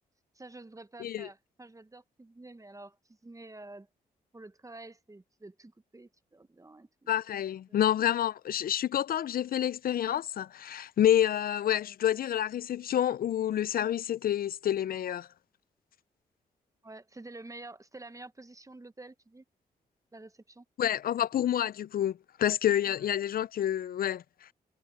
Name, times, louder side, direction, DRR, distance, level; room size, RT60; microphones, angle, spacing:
voice 1, 0.3-3.0 3.2-3.9 4.3-7.1 7.7-7.8 16.8-19.4 20.1-20.6 22.8-23.1, right 2 dB, 20° right, 1.1 m, -49 dB
voice 2, 7.1-15.3 20.8-24.2, left 11 dB, 60° left, 0.5 m, -28 dB
supercardioid pair, 50°, 17 cm